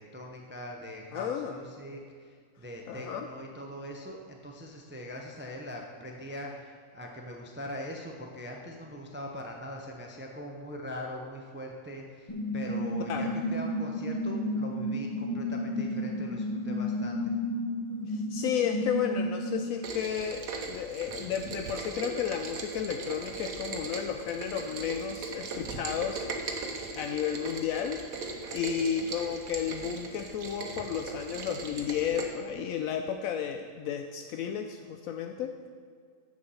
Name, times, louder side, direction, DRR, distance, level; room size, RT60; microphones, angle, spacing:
voice 1, 0.0-17.4, left 1 dB, 10° right, 1 dB, 0.6 m, -42 dB
voice 2, 1.1-1.6 2.9-3.3 13.1-13.3 18.1-28.0 28.5-35.6, left 8 dB, 80° left, 5 dB, 1.0 m, -33 dB
sound 1, 12.3-19.6, equal, 20° left, 1.4 m, -32 dB
Rain, 19.8-32.2, right 4 dB, 85° right, 1.4 m, -39 dB
7.8 x 7.1 x 5.5 m, 2.1 s
omnidirectional pair, 1.5 m